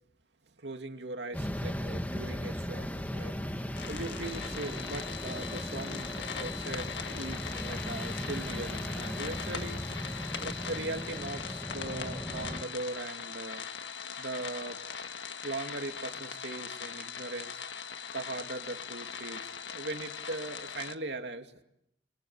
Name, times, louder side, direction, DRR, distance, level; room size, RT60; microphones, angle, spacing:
voice 1, 0.6-9.8 10.4-13.6 14.0-14.8 15.4-17.6 18.1-21.6, right 2 dB, 75° right, 5 dB, 2.6 m, -40 dB
sound 1, 1.3-12.6, equal, 10° left, 1.5 m, -37 dB
sound 2, 3.8-20.9, left 7 dB, 75° left, 1.7 m, -40 dB
29.5 x 24.0 x 7.2 m, 0.78 s
head